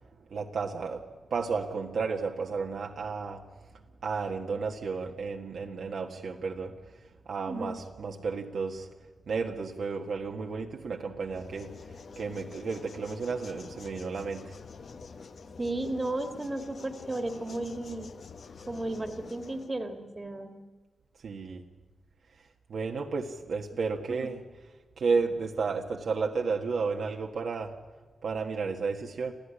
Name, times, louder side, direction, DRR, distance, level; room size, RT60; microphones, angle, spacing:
voice 1, 0.3-1.0 1.3-3.4 4.0-8.9 9.3-11.7 12.1-14.5 21.2-21.6 22.7-24.4 25.0-27.8 28.2-29.3, right 4 dB, 65° right, 2 dB, 1.6 m, -32 dB
voice 2, 7.4-7.8 15.6-18.1 18.7-20.6 24.2-24.3, right 2 dB, 20° right, 6 dB, 1.9 m, -34 dB
sound 1, 11.3-19.7, left 4 dB, 55° left, 1.2 m, -47 dB
27.5 x 15.0 x 9.9 m, 1.3 s
wide cardioid pair, 145°, 0 cm